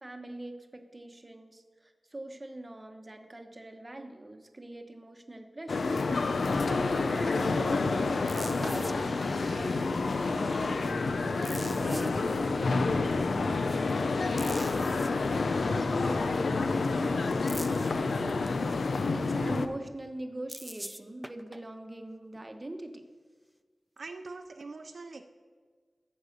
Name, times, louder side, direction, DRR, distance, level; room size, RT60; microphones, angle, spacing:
voice 1, 0.0-5.9 6.3-14.8 15.6-18.5 19.1-23.1, right 1 dB, 25° right, 5 dB, 1.0 m, -43 dB
sound 1, 5.7-19.7, left 3 dB, 90° left, 0.6 m, -29 dB
sound 2, 8.3-8.9 11.4-12.1 14.4-15.1 17.5-17.9 20.5-21.6 24.1-24.2, equal, 5° right, 0.4 m, -43 dB
Fireworks, 8.5-16.9, left 1 dB, 60° left, 3.6 m, -46 dB
voice 2, 24.0-25.2, right 3 dB, 75° right, 6 dB, 0.5 m, -43 dB
14.0 x 5.5 x 6.6 m, 1.5 s
wide cardioid pair, 95°, 0 cm